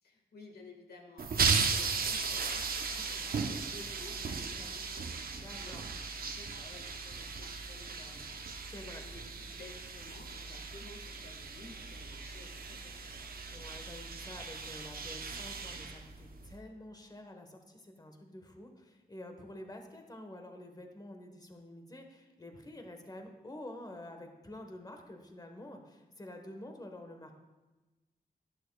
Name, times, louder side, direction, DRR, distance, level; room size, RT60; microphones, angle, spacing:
voice 1, 0.0-13.2, left 2 dB, 75° left, 2 dB, 1.7 m, -54 dB
sound 1, 1.2-16.6, right 5 dB, 65° right, 0.8 m, -37 dB
voice 2, 5.4-5.8 8.7-9.0 13.5-27.3, left 1 dB, 25° left, 4 dB, 1.2 m, -48 dB
11.0 x 11.0 x 2.3 m, 1.2 s
wide cardioid pair, 90°, 16 cm